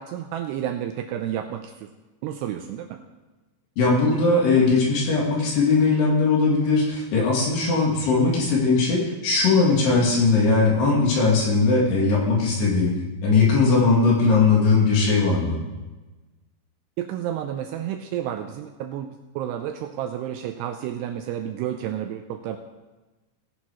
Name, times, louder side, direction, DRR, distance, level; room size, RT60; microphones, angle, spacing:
voice 1, 0.0-1.9 2.2-3.0 17.0-22.6, right 10 dB, 80° right, 5 dB, 2.4 m, -31 dB
voice 2, 3.8-12.9 13.2-15.6, left 4 dB, 65° left, -3 dB, 4.5 m, -19 dB
18.5 x 10.5 x 3.1 m, 1.2 s
omnidirectional pair, 5.3 m